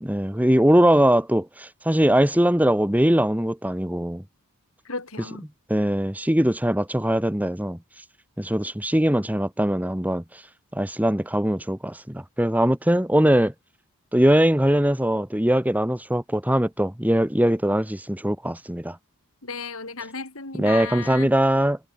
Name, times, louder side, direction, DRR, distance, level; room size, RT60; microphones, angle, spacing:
voice 1, 0.0-4.2 5.7-7.8 8.4-10.2 10.7-13.5 14.1-19.0 20.5-21.8, right 1 dB, 5° right, 1.6 m, -21 dB
voice 2, 4.8-5.4 19.4-21.3, left 4 dB, 65° left, 4.6 m, -34 dB
head